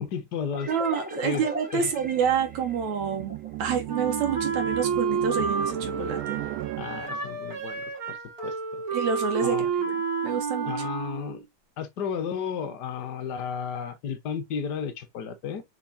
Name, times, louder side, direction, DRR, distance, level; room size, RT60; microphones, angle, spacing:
voice 1, 0.0-0.7 1.2-1.5 1.7-1.9 6.8-8.2 8.4-8.8 9.4-9.7 10.7-11.4 11.8-15.6, left 7 dB, 55° left, 1.2 m, -33 dB
sound 1, 0.5-4.0, equal, 15° right, 0.3 m, -39 dB
voice 2, 0.7-6.4 8.9-10.9, right 7 dB, 70° right, 2.4 m, -28 dB
sound 2, 1.9-7.4, right 18 dB, 90° right, 2.1 m, -36 dB
Wind instrument woodwind instrument, 3.9-11.4, right 5 dB, 30° right, 2.2 m, -30 dB
6.9 x 5.2 x 2.8 m
omnidirectional pair, 3.5 m